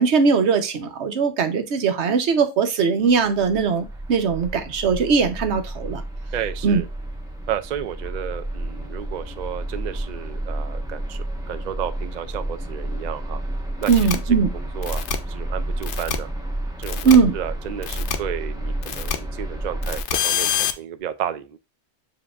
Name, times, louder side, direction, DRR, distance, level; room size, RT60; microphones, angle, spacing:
voice 1, 0.0-6.0 6.6-6.8 13.9-14.5 17.0-17.3, right 5 dB, 80° right, 1.1 m, -19 dB
sound 1, 3.1-20.0, right 1 dB, 5° right, 0.8 m, -31 dB
voice 2, 6.3-6.9 7.5-13.4 13.8-13.9 14.3-16.3 16.8-21.6, right 9 dB, 55° right, 0.5 m, -32 dB
sound 2, 13.8-14.2 14.8-15.2 15.8-16.2 16.8-17.2 17.8-18.2 18.8-19.2 19.8-20.7, left 10 dB, 90° left, 0.9 m, -26 dB
7.2 x 2.8 x 2.3 m
omnidirectional pair, 1.1 m